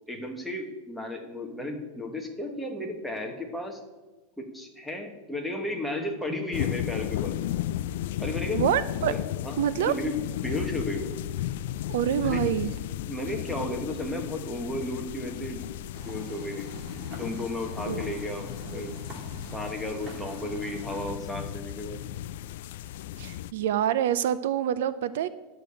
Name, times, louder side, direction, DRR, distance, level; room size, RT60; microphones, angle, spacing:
voice 1, 0.1-3.8 4.4-7.4 8.2-8.6 9.0-9.5 9.9-11.1 12.1-12.4 13.1-15.6 16.0-16.7 17.2-18.9 19.5-22.0, left 1 dB, ahead, 0 dB, 1.2 m, -34 dB
sound 1, 6.5-23.5, left 13 dB, 60° left, 0.4 m, -34 dB
voice 2, 8.5-9.1 9.6-9.9 11.9-12.7 17.9-18.1 18.7-18.9 23.2-25.3, right 10 dB, 65° right, 14 dB, 0.5 m, -26 dB
sound 2, 15.9-21.0, right 2 dB, 20° right, 2.0 m, -43 dB
11.0 x 6.7 x 8.2 m, 1.2 s
supercardioid pair, 175°, 0 cm